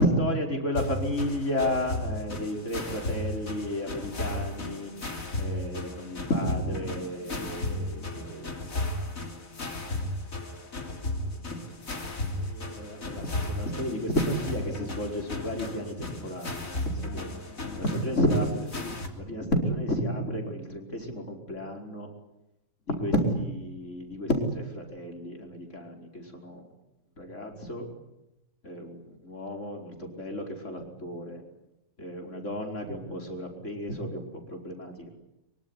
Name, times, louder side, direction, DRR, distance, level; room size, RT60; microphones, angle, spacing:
voice 1, 0.0-4.9 5.3-8.6 11.5-11.6 12.3-17.3 17.8-22.1 22.9-26.6 27.2-27.9 28.6-31.4 32.0-35.1, equal, 65° left, 2 dB, 5.4 m, -31 dB
sound 1, 0.7-19.1, left 2 dB, 80° left, 3.5 m, -35 dB
25.0 x 24.0 x 9.7 m, 0.92 s
omnidirectional pair, 1.4 m